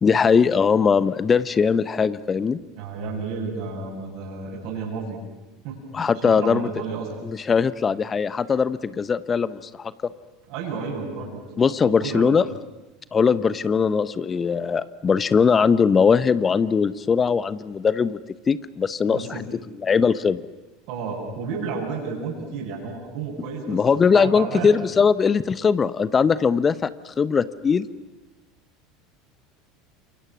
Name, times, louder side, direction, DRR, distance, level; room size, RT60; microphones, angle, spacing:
voice 1, 0.0-2.6 5.9-6.7 7.2-9.9 11.6-12.4 13.1-18.2 18.5-19.4 19.8-20.4 23.7-27.9, left 6 dB, 25° left, 16 dB, 1.0 m, -20 dB
voice 2, 2.8-5.2 5.6-7.1 10.5-11.4 12.0-12.4 19.0-19.5 20.9-23.8 24.1-24.7, right 5 dB, 60° right, -5 dB, 7.6 m, -32 dB
30.0 x 28.0 x 6.3 m, 1.1 s
figure-of-eight pair, 75°, 0 cm